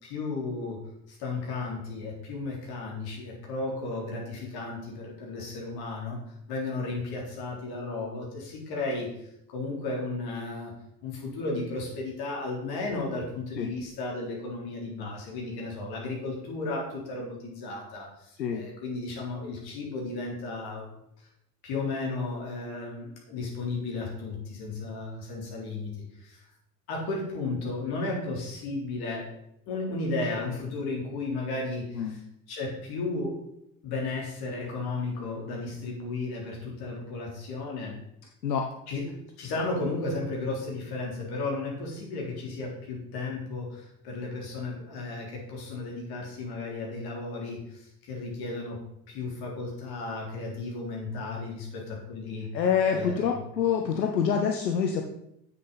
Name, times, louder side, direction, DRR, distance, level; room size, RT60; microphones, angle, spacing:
voice 1, 0.0-10.7 11.0-20.9 21.6-26.5 26.9-29.3 29.7-32.2 32.5-33.4 33.8-38.0 38.9-48.8 49.1-52.5 52.9-53.4, left 3 dB, 45° left, -2 dB, 3.7 m, -34 dB
voice 2, 52.5-55.0, left 7 dB, 75° left, 3 dB, 0.9 m, -26 dB
7.7 x 6.8 x 5.6 m, 0.78 s
figure-of-eight pair, 70°, 50 cm